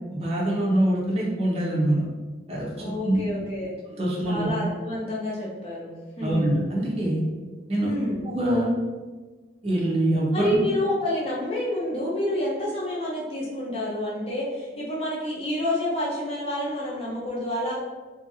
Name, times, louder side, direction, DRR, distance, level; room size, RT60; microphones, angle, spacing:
voice 1, 0.1-2.0 2.5-3.2 4.0-4.5 6.2-7.2 7.7-7.9 8.2-8.7 9.6-10.6, right 1 dB, 35° right, -5 dB, 0.5 m, -24 dB
voice 2, 2.7-3.7 4.2-6.4 7.8-8.2 10.3-17.8, left 1 dB, 30° left, -5 dB, 0.7 m, -28 dB
2.7 x 2.5 x 2.6 m, 1.3 s
head